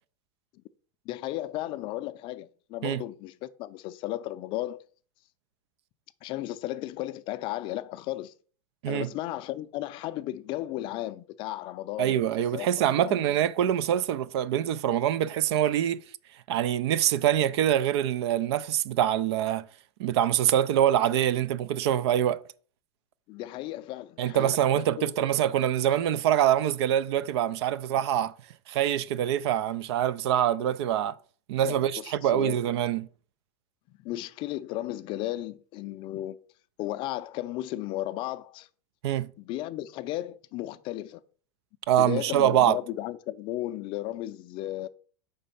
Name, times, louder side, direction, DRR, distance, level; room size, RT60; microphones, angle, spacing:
voice 1, 1.1-4.8 6.2-8.3 8.9-12.2 12.5-13.3 23.3-25.3 31.6-32.6 33.9-36.4 36.8-38.7 39.4-41.2 42.0-44.9, left 15 dB, 40° left, 0.4 m, -35 dB
voice 2, 12.0-16.0 16.5-19.7 20.0-22.4 24.2-28.3 28.7-31.2 31.5-33.1 39.0-39.3 41.9-42.8, right 11 dB, 75° right, 0.4 m, -25 dB
5.2 x 3.3 x 5.5 m
supercardioid pair, 145°, 14 cm